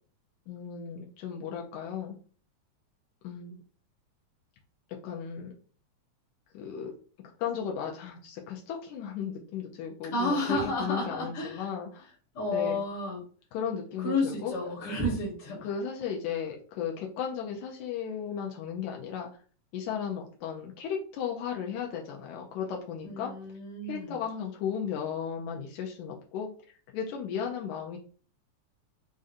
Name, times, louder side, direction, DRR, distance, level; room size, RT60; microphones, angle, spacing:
voice 1, 0.5-2.2 3.2-3.6 5.0-5.5 6.5-6.9 7.2-12.1 12.5-12.8 13.5-14.6 15.6-19.3 19.7-23.3 23.8-26.5 26.9-28.0, left 7 dB, 85° left, 0 dB, 2.0 m, -35 dB
voice 2, 10.1-11.6 12.3-13.2 14.0-15.7 23.0-24.2, left 1 dB, 60° left, -4 dB, 1.8 m, -31 dB
5.2 x 2.5 x 2.5 m, 0.42 s
omnidirectional pair, 3.3 m